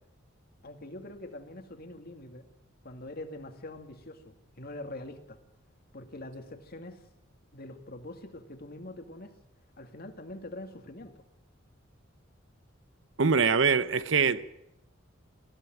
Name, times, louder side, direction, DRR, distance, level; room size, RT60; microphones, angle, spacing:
voice 1, 0.6-2.5 2.8-5.4 5.9-7.0 7.5-9.3 9.8-11.1, left 1 dB, 50° left, 2.2 m, -44 dB
voice 2, 13.2-14.4, right 5 dB, 65° right, 0.8 m, -23 dB
20.0 x 14.5 x 9.2 m
head